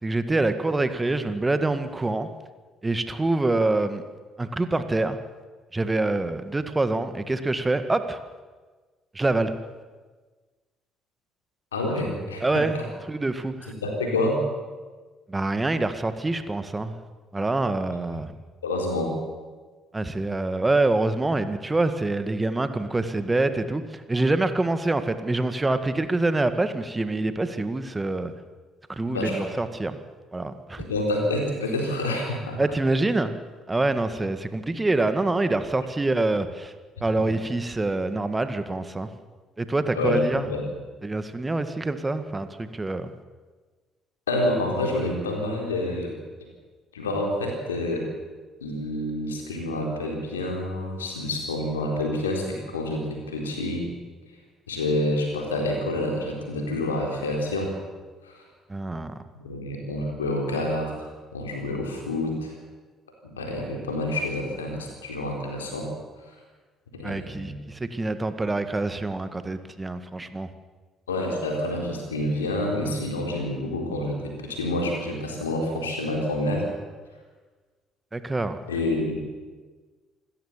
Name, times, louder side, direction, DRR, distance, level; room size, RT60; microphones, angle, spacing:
voice 1, 0.0-2.3 2.8-4.0 4.4-5.2 5.7-8.2 9.1-9.5 12.4-12.8 13.1-13.7 15.3-16.9 17.3-18.3 19.9-28.3 28.9-30.0 30.3-30.8 32.6-33.4 33.7-36.7 37.0-39.1 39.6-40.5 41.0-43.1 58.7-59.1 67.0-70.5 78.1-78.6, right 2 dB, 20° right, 10 dB, 1.7 m, -26 dB
voice 2, 11.7-12.9 13.8-14.4 18.6-19.2 29.1-29.5 30.8-32.6 37.2-37.3 39.9-40.6 44.3-46.1 46.9-48.1 48.6-53.9 54.7-57.7 58.2-58.4 59.4-60.9 61.3-62.5 63.2-65.9 66.9-67.6 71.1-76.7 78.7-79.3, left 1 dB, 85° left, 1 dB, 4.0 m, -28 dB
26.5 x 13.5 x 7.4 m, 1.4 s
figure-of-eight pair, 45°, 0 cm